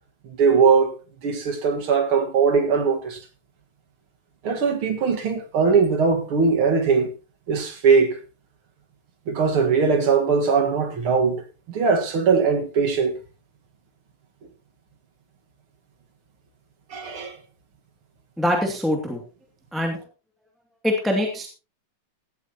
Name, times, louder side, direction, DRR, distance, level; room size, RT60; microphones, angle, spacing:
voice 1, 0.2-0.9 1.2-3.2 4.4-7.1 7.5-8.2 9.3-13.1 16.9-17.4, right 5 dB, 45° right, 2.2 m, -20 dB
voice 2, 18.4-19.2 19.7-20.0 20.8-21.5, left 1 dB, ahead, 1.9 m, -23 dB
16.5 x 14.0 x 3.0 m
omnidirectional pair, 3.9 m